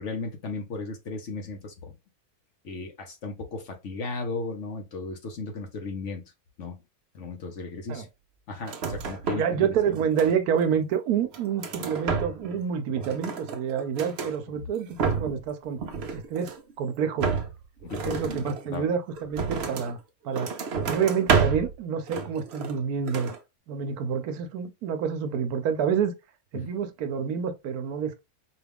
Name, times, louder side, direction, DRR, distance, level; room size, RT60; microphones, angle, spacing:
voice 1, 0.0-1.9 2.6-6.2 6.6-6.8 7.1-8.1 8.5-9.7 14.5-14.6 17.8-18.9 26.5-26.7, left 3 dB, 60° left, 1.1 m, -36 dB
sound 1, 8.6-9.6 9.9-10.6 11.1-12.6 12.9-14.4 14.8-15.5 15.8-16.7 17.2-20.0 20.3-21.8 22.1-22.8 23.1-23.4, right 5 dB, 55° right, 0.8 m, -30 dB
voice 2, 9.3-15.8 16.1-17.4 18.0-20.0 20.2-20.5 20.9-23.3 23.7-26.1 26.5-28.2, right 7 dB, 80° right, 1.1 m, -28 dB
4.7 x 2.3 x 3.4 m
omnidirectional pair, 1.6 m